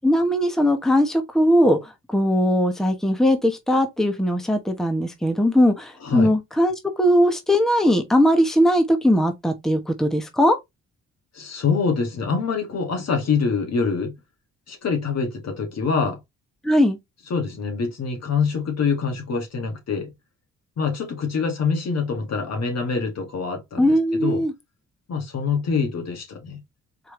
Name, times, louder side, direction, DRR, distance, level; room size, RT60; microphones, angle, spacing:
voice 1, 0.0-10.6 16.6-17.0 23.8-24.5, equal, ahead, 1.0 m, -19 dB
voice 2, 6.0-6.3 11.3-14.1 14.7-16.2 17.3-20.1 20.8-24.4 25.1-26.6, left 5 dB, 60° left, 2.0 m, -25 dB
4.6 x 3.4 x 3.1 m
cardioid pair, 90°, 30 cm